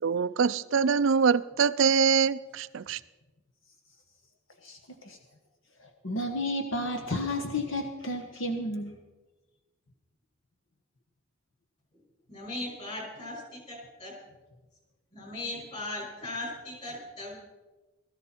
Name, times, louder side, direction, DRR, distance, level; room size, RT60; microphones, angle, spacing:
voice 1, 0.0-3.0, right 6 dB, 65° right, 0.4 m, -24 dB
voice 2, 6.0-9.0, left 1 dB, 70° left, 1.2 m, -32 dB
voice 3, 12.3-14.1 15.1-17.4, left 2 dB, 35° left, 5.9 m, -38 dB
17.5 x 14.0 x 4.4 m
head